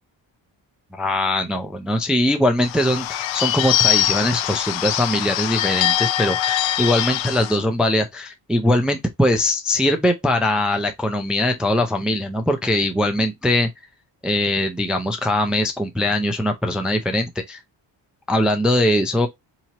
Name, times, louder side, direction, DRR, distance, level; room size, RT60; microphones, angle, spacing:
voice 1, 0.9-13.7 14.2-17.6 18.3-19.3, left 1 dB, ahead, 0.3 m, -21 dB
Bird / Bell, 2.6-7.6, left 12 dB, 80° left, 0.6 m, -22 dB
4.4 x 2.9 x 2.8 m
cardioid pair, 165°, 44 cm